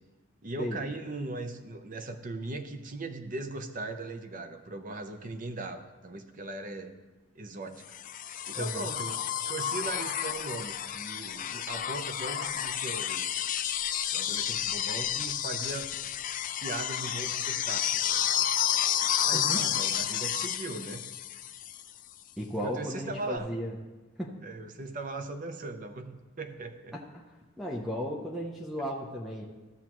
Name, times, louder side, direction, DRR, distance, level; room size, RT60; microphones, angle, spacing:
voice 1, 0.4-6.9 7.3-7.8 8.5-9.2 9.5-13.3 14.1-15.9 16.6-18.0 19.2-21.0 22.6-23.5 24.4-26.9, right 2 dB, 40° right, 7 dB, 0.6 m, -39 dB
sound 1, 7.9-21.9 23.4-23.5, left 10 dB, 40° left, 0.4 m, -31 dB
voice 2, 8.5-8.9 19.3-19.7 22.4-23.8 24.2-24.4 26.9-27.0 27.6-29.4, equal, ahead, -1 dB, 0.7 m, -35 dB
14.5 x 7.1 x 3.0 m, 1.2 s
head